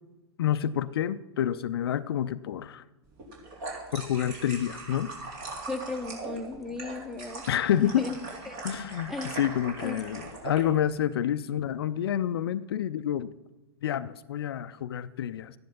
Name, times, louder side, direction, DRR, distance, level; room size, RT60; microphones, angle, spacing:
voice 1, 0.4-2.8 3.9-5.1 7.5-8.0 8.6-13.3 13.8-15.5, left 10 dB, 60° left, 13 dB, 0.5 m, -28 dB
sound 1, 3.2-10.6, right 3 dB, 45° right, 3.7 m, -40 dB
voice 2, 5.7-7.4 7.8-8.2 8.5-8.6 9.1-9.3 9.8-10.0, left 3 dB, ahead, 7 dB, 0.9 m, -35 dB
13.0 x 10.5 x 5.4 m, 1.1 s
figure-of-eight pair, 105°, 14 cm